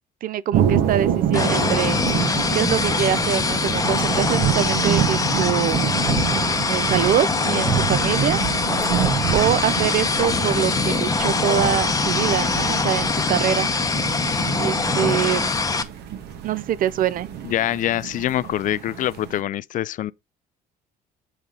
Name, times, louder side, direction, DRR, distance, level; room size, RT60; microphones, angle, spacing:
voice 1, 0.2-2.0 2.5-5.8 6.7-8.4 9.3-13.7 14.6-15.5 16.4-17.3, right 11 dB, 55° right, 0.5 m, -24 dB
sound 1, 0.5-19.4, right 9 dB, 80° right, 1.3 m, -27 dB
sound 2, 1.3-15.8, left 4 dB, 20° left, 0.8 m, -23 dB
voice 2, 17.4-20.1, left 12 dB, 50° left, 0.4 m, -24 dB
7.0 x 5.0 x 3.8 m
cardioid pair, 110°, 17 cm